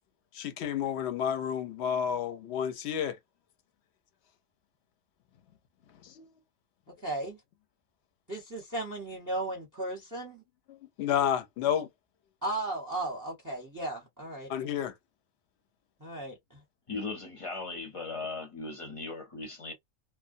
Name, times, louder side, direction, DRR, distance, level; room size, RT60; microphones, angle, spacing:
voice 1, 0.3-3.2 6.0-6.3 10.7-11.9 14.5-14.9, left 9 dB, 65° left, 0.8 m, -30 dB
voice 2, 7.0-7.4 8.3-10.4 12.4-14.5 16.0-16.6, right 2 dB, 20° right, 0.6 m, -35 dB
voice 3, 16.9-19.7, left 3 dB, 30° left, 0.7 m, -38 dB
2.2 x 2.2 x 2.5 m
omnidirectional pair, 1.4 m